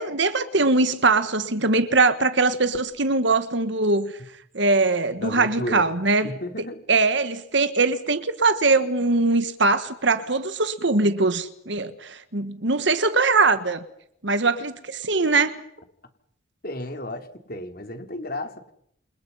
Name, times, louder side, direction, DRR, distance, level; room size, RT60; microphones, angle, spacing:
voice 1, 0.0-4.1 4.5-6.3 6.9-13.8 14.2-15.6, right 3 dB, 60° right, 1.5 m, -21 dB
voice 2, 5.2-5.9 6.2-6.8 16.6-18.7, left 1 dB, 45° left, 3.6 m, -33 dB
29.0 x 28.5 x 5.7 m
head